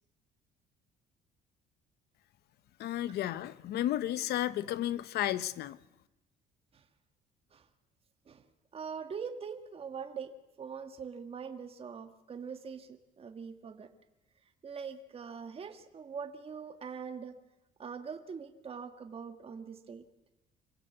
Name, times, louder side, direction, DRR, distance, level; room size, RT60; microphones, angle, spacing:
voice 1, 2.8-5.8, left 13 dB, 70° left, 0.9 m, -33 dB
voice 2, 8.7-10.3 10.6-13.9 14.6-17.4 17.8-20.1, right 6 dB, 35° right, 1.7 m, -43 dB
26.0 x 16.5 x 8.0 m
cardioid pair, 110°, 17 cm